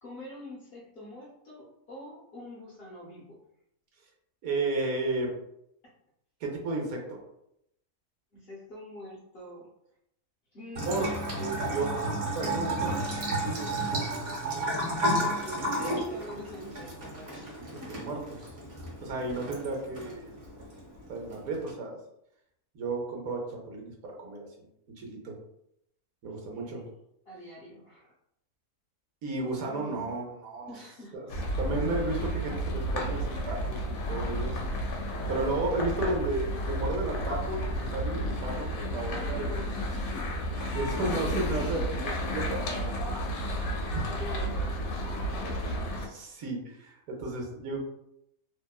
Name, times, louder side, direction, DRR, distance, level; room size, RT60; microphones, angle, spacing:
voice 1, 0.0-3.4 5.8-5.9 8.3-9.7 10.5-11.2 15.4-18.2 26.3-26.8 27.2-28.1 29.7-30.1 30.7-31.3 38.9-42.0 44.1-45.9, left 1 dB, 55° left, -5 dB, 0.7 m, -46 dB
voice 2, 4.4-5.3 6.4-7.2 10.8-11.1 11.4-11.9 12.3-13.0 13.3-14.1 17.6-18.2 19.0-20.4 21.1-22.0 22.7-23.9 24.2-24.7 25.0-25.3 26.2-26.8 29.2-30.7 31.1-31.3 31.6-34.6 35.3-39.9 40.7-41.8 42.2-42.9 43.9-44.1 46.0-47.8, right 2 dB, 75° right, 0 dB, 1.1 m, -33 dB
Bathtub (filling or washing) / Trickle dribble, 10.8-21.7, right 1 dB, 55° right, 1.1 m, -33 dB
sound 1, 31.3-46.1, equal, 75° left, 1.0 m, -32 dB
2.8 x 2.1 x 2.3 m, 0.78 s
omnidirectional pair, 1.5 m